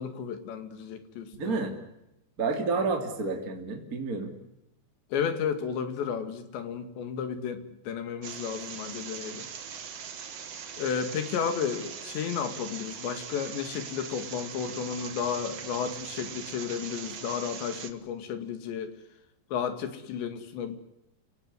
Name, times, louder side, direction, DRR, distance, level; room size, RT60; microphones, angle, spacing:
voice 1, 0.0-1.7 5.1-9.5 10.8-19.0 19.5-20.8, left 7 dB, 80° left, 10 dB, 4.4 m, -33 dB
voice 2, 1.4-1.7 2.4-4.3, right 4 dB, 25° right, 3 dB, 2.7 m, -30 dB
sound 1, 8.2-17.9, right 7 dB, 50° right, 2.2 m, -41 dB
29.5 x 17.5 x 9.7 m, 0.87 s
omnidirectional pair, 5.0 m